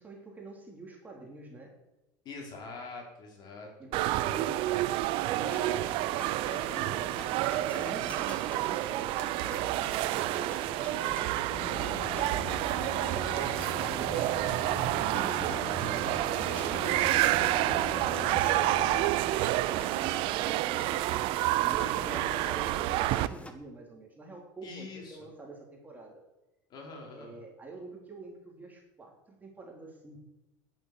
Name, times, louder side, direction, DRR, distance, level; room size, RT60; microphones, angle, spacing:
voice 1, 0.0-1.7 3.8-4.4 5.2-5.9 6.8-12.5 12.9-15.7 16.2-21.0 21.6-26.2 27.2-30.2, right 3 dB, 15° right, -1 dB, 3.9 m, -46 dB
voice 2, 2.2-3.7 4.0-4.5 5.1-5.8 6.4-7.1 9.9-10.2 13.2-13.8 21.8-22.2 24.6-25.3 26.7-27.4, left 3 dB, 45° left, 0 dB, 4.8 m, -46 dB
sound 1, 3.9-23.3, right 16 dB, 60° right, 0.6 m, -29 dB
sound 2, 5.3-23.5, left 2 dB, 10° left, 1.5 m, -47 dB
sound 3, 11.5-19.1, left 7 dB, 30° left, 0.8 m, -41 dB
12.0 x 8.3 x 8.8 m, 1.0 s
supercardioid pair, 125°, 10 cm